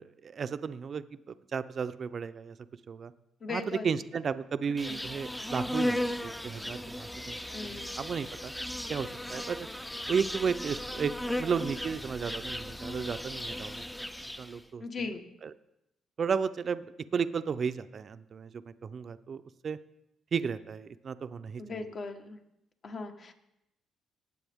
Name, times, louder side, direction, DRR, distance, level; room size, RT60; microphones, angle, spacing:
voice 1, 0.0-2.6 2.9-3.1 3.5-6.0 6.2-7.4 7.6-8.5 8.9-9.7 10.1-14.1 14.4-14.8 15.4-15.5 16.2-16.9 17.1-19.8 20.3-21.8, right 6 dB, 50° right, 13 dB, 0.5 m, -34 dB
voice 2, 3.4-3.9 4.9-5.0 7.5-7.9 14.8-15.2 21.6-22.4 22.8-23.3, left 3 dB, 45° left, 6 dB, 1.4 m, -38 dB
Insect, 4.8-14.6, left 1 dB, 5° left, 0.6 m, -36 dB
18.0 x 7.7 x 3.6 m, 0.85 s
cardioid pair, 90°, 0 cm